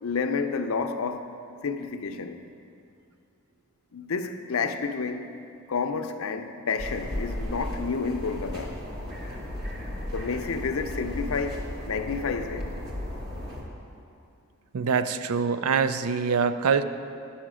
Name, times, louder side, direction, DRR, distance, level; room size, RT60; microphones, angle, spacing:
voice 1, 0.0-1.3 1.6-2.4 3.9-5.3 5.7-8.8 10.1-11.6 11.8-12.7, left 5 dB, 75° left, 0.5 m, -30 dB
sound 1, 6.8-13.6, left 1 dB, 45° right, 1.4 m, -35 dB
voice 2, 14.7-16.8, right 6 dB, 90° right, 0.4 m, -24 dB
10.0 x 5.6 x 6.2 m
head